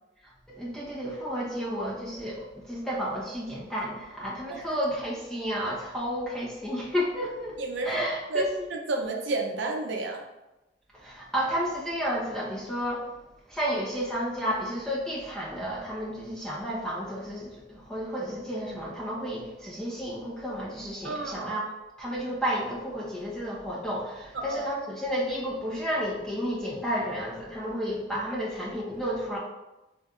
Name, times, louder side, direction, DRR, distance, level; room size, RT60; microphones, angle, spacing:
voice 1, 0.5-8.5 11.0-13.1 13.5-21.6 22.0-29.4, equal, 5° left, -6 dB, 0.9 m, -32 dB
voice 2, 7.6-8.0 8.3-10.2 21.0-21.5 24.3-24.6, right 2 dB, 80° right, 2 dB, 0.6 m, -31 dB
6.1 x 2.6 x 2.4 m, 1.0 s
head